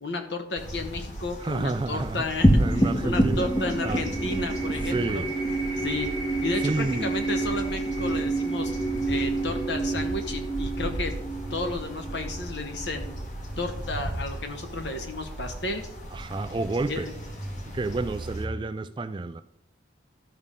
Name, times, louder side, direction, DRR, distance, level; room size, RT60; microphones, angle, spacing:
voice 1, 0.0-5.2 5.8-6.1 6.4-8.7 9.1-11.1 11.5-13.2 13.6-15.8 16.9-17.1, left 2 dB, 65° left, 1.2 m, -32 dB
sound 1, 0.6-18.5, right 1 dB, 40° left, 1.4 m, -37 dB
voice 2, 1.4-2.3 2.6-4.1 4.9-5.3 6.6-7.1 16.1-17.1 17.7-19.4, right 3 dB, 25° right, 0.3 m, -30 dB
sound 2, 2.4-13.1, right 1 dB, 25° left, 0.9 m, -27 dB
13.0 x 5.5 x 3.7 m
head